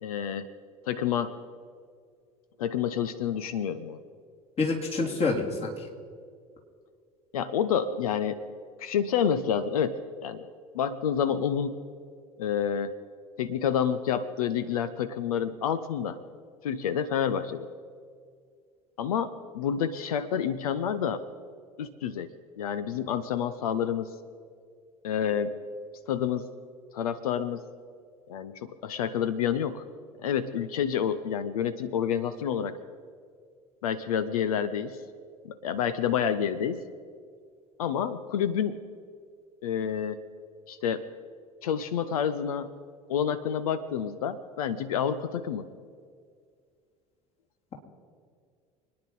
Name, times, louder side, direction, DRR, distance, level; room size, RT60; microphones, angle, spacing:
voice 1, 0.0-0.5 0.9-1.3 2.6-4.0 7.3-8.4 8.8-10.4 10.7-11.8 12.4-12.9 13.4-16.2 16.6-17.7 19.0-21.2 21.8-24.1 25.0-25.6 26.1-26.5 26.9-27.6 28.3-29.8 30.2-32.8 33.8-35.0 35.4-36.8 37.8-38.8 39.6-40.2 40.7-41.0 41.6-42.7 43.1-45.7, left 8 dB, 65° left, 13 dB, 0.7 m, -28 dB
voice 2, 4.6-5.7, left 3 dB, 30° left, 0 dB, 3.1 m, -27 dB
26.5 x 9.9 x 5.5 m, 2.1 s
figure-of-eight pair, 70°, 20 cm